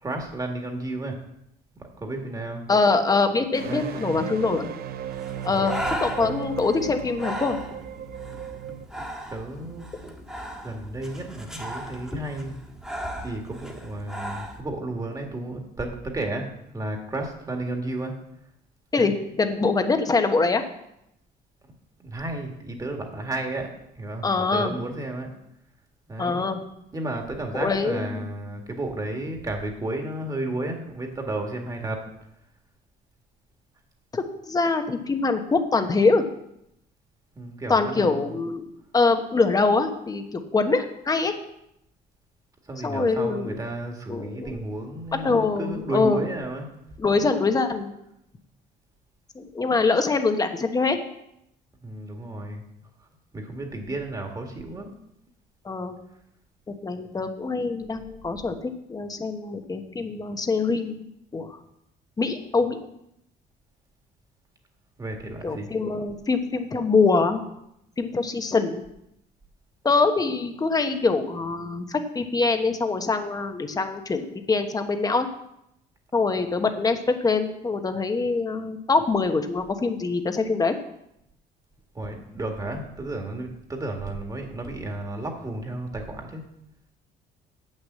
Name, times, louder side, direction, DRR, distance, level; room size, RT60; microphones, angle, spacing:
voice 1, 0.0-1.2 1.8-2.6 3.6-4.2 5.5-5.7 9.3-10.1 10.6-12.6 13.2-18.1 18.9-19.1 22.0-25.4 26.1-26.5 26.9-32.1 37.3-38.4 42.7-46.7 47.2-47.3 51.8-52.6 53.3-55.0 65.0-65.7 81.9-86.5, right 2 dB, 20° right, 3 dB, 1.9 m, -33 dB
voice 2, 2.7-4.7 5.4-7.6 18.9-20.6 24.2-24.7 26.2-26.6 27.5-28.3 34.1-36.3 37.7-38.7 38.9-41.3 42.8-43.6 44.1-44.6 45.1-46.3 47.0-47.9 49.3-51.0 55.6-56.0 56.8-61.1 61.3-61.6 62.2-62.8 65.4-67.4 68.0-68.8 69.8-75.3 76.1-80.8, left 4 dB, 20° left, 7 dB, 1.1 m, -24 dB
sound 1, 3.5-8.8, right 10 dB, 65° right, 0.7 m, -36 dB
Breathing, 5.1-14.6, equal, 5° right, 1.6 m, -36 dB
8.1 x 6.5 x 7.5 m, 0.79 s
cardioid pair, 110°, 17 cm